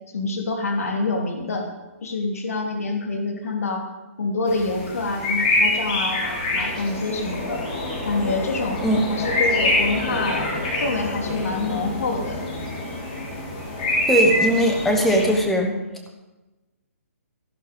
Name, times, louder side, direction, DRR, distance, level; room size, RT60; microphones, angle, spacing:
voice 1, 0.1-1.7 2.0-3.9 4.2-7.6 8.0-8.8 9.1-10.5 10.8-12.4, left 3 dB, 75° left, 2 dB, 3.0 m, -26 dB
sound 1, 4.5-15.4, left 1 dB, 35° left, 3.8 m, -25 dB
voice 2, 14.1-15.8, equal, 5° left, 2 dB, 1.1 m, -19 dB
15.0 x 11.5 x 5.2 m, 1.1 s
hypercardioid pair, 175°, 8 cm